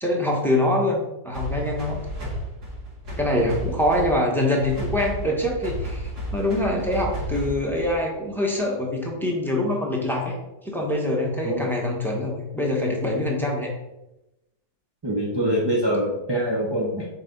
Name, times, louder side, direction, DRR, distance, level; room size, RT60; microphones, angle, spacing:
voice 1, 0.0-2.0 3.2-10.3 10.6-13.7, left 1 dB, ahead, -1 dB, 0.7 m, -24 dB
sound 1, 1.3-8.1, equal, 60° right, 2.5 m, -33 dB
voice 2, 15.0-17.1, equal, 40° right, -4 dB, 0.3 m, -24 dB
5.0 x 4.6 x 5.2 m, 0.95 s
omnidirectional pair, 2.0 m